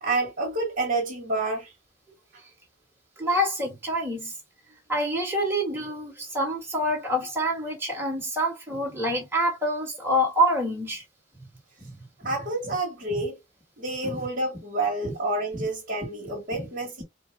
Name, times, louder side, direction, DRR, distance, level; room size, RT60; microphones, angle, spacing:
voice 1, 0.0-1.7 12.2-13.4 13.8-17.0, right 2 dB, 45° right, 1.8 m, -28 dB
voice 2, 3.2-4.3 4.9-11.0 11.8-12.3 12.6-12.7 13.2-13.3 14.0-14.2 15.0-15.1 15.5-15.7 16.5-16.7, equal, 10° right, 2.0 m, -27 dB
4.6 x 2.3 x 3.5 m
head